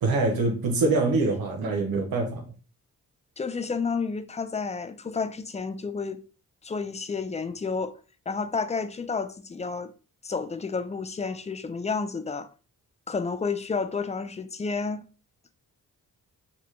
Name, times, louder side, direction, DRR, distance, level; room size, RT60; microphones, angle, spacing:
voice 1, 0.0-2.4, right 3 dB, 85° right, 0.9 m, -24 dB
voice 2, 3.4-6.2 6.6-8.0 8.3-9.9 10.2-12.5 13.1-15.0, left 4 dB, 20° left, 0.3 m, -30 dB
4.1 x 2.2 x 3.1 m
cardioid pair, 70°, 35 cm